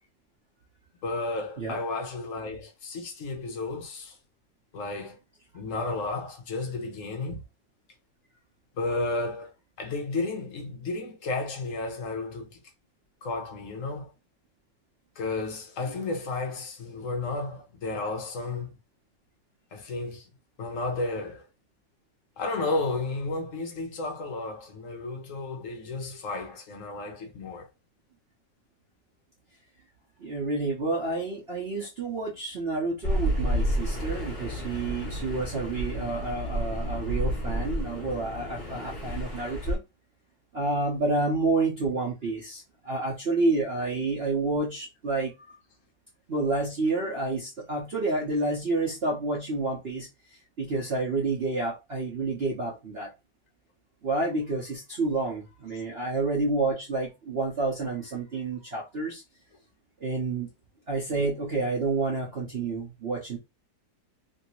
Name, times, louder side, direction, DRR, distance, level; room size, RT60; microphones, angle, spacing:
voice 1, 1.0-4.2 4.7-5.2 5.5-7.4 8.8-12.6 13.2-14.1 15.2-18.7 19.7-20.3 20.6-21.5 22.4-27.7, left 3 dB, 60° left, 0.8 m, -32 dB
voice 2, 30.2-39.8 40.5-45.3 46.3-50.1 50.6-53.1 54.0-59.2 60.0-60.5 60.9-63.4, right 3 dB, 50° right, 0.7 m, -29 dB
sound 1, 33.0-39.8, equal, 30° left, 0.9 m, -30 dB
3.2 x 2.7 x 2.9 m
omnidirectional pair, 2.0 m